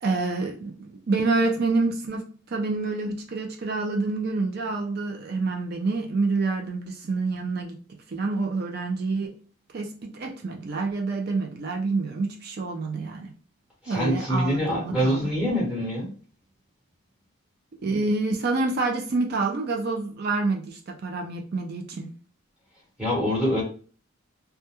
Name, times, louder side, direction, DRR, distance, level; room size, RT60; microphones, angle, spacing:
voice 1, 0.0-7.8 8.1-9.3 9.7-13.3 13.9-15.2 17.8-22.1, right 3 dB, 45° right, 2 dB, 0.4 m, -27 dB
voice 2, 13.8-16.1 23.0-23.6, equal, 5° right, -7 dB, 1.1 m, -25 dB
2.2 x 2.1 x 2.9 m, 0.41 s
head